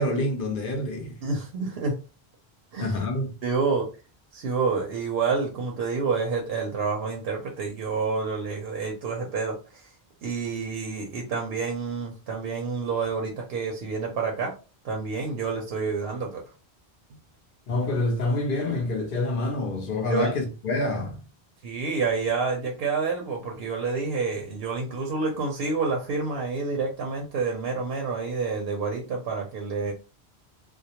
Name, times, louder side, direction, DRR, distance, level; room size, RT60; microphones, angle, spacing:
voice 1, 0.0-1.2 2.8-3.3 17.7-21.2, left 2 dB, 60° left, 0.7 m, -27 dB
voice 2, 1.2-1.9 2.7-3.0 3.4-3.9 4.3-9.6 10.2-14.5 14.8-16.4 20.1-20.3 21.6-29.9, right 4 dB, 70° right, 0.8 m, -28 dB
2.2 x 2.1 x 2.8 m
omnidirectional pair, 1.1 m